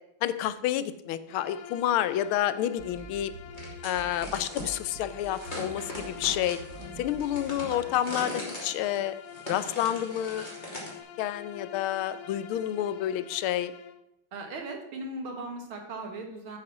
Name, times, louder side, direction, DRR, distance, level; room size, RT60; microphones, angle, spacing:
voice 1, 0.2-3.3 3.8-6.6 7.0-9.1 9.5-10.4 11.2-13.7, left 11 dB, 80° left, 14 dB, 1.5 m, -29 dB
Bowed string instrument, 1.3-14.0, left 9 dB, 60° left, 1.0 m, -46 dB
sound 1, 2.8-7.9, right 3 dB, 50° right, 1.3 m, -46 dB
sound 2, 3.5-4.7 5.2-11.0, left 1 dB, 20° left, 3.0 m, -40 dB
voice 2, 14.3-16.6, right 2 dB, 75° right, 3 dB, 2.6 m, -38 dB
8.5 x 7.9 x 6.1 m, 0.85 s
omnidirectional pair, 2.3 m